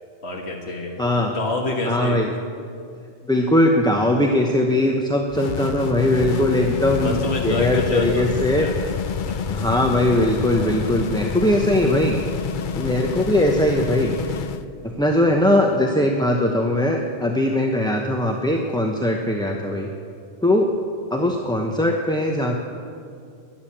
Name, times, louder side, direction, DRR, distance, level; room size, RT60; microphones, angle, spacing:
voice 1, 0.2-0.9 1.3-2.2 7.0-8.3 8.6-8.7 9.3-9.7 10.6-10.8 15.2-15.3 17.8-18.1 21.2-21.4, left 2 dB, 80° left, 1 dB, 1.8 m, -27 dB
voice 2, 1.0-1.3 1.8-2.3 3.3-7.2 7.4-8.9 9.4-12.2 12.7-14.4 14.8-19.9 20.4-20.7 21.1-22.6, left 1 dB, 5° left, 1 dB, 0.8 m, -20 dB
sound 1, 5.3-14.7, left 7 dB, 55° left, 0.7 m, -28 dB
14.0 x 10.5 x 8.7 m, 2.4 s
omnidirectional pair, 1.1 m